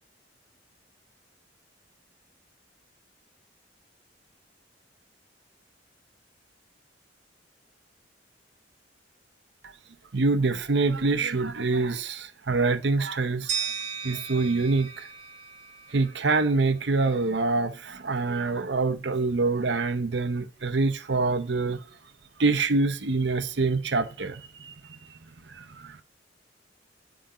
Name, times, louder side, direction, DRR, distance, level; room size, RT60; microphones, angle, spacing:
voice 1, 10.1-13.7 14.0-15.1 15.9-21.8 22.4-25.0 25.5-26.0, right 3 dB, 70° right, 0.8 m, -25 dB
sound 1, 13.5-16.4, right 6 dB, 40° right, 3.3 m, -35 dB
11.5 x 5.0 x 5.0 m
head